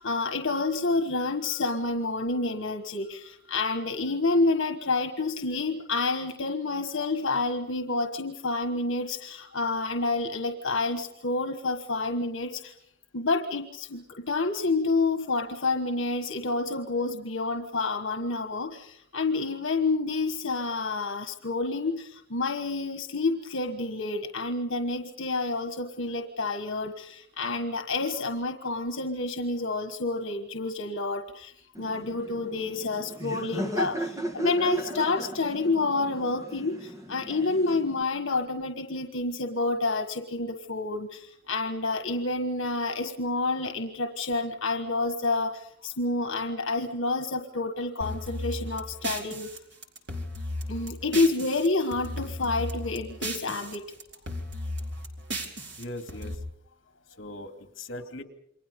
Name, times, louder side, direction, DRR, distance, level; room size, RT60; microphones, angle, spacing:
voice 1, 0.0-12.7 13.1-49.5 50.7-53.9, left 3 dB, 85° left, 7 dB, 1.5 m, -29 dB
Laughter, 31.7-38.0, right 1 dB, 15° right, 1.2 m, -36 dB
sound 1, 48.0-51.7 51.9-53.8 54.0-56.3, equal, 60° right, 4.3 m, -35 dB
voice 2, 55.8-56.4 57.1-58.2, left 1 dB, 65° left, 7 dB, 2.7 m, -40 dB
28.5 x 23.5 x 5.4 m, 0.72 s
head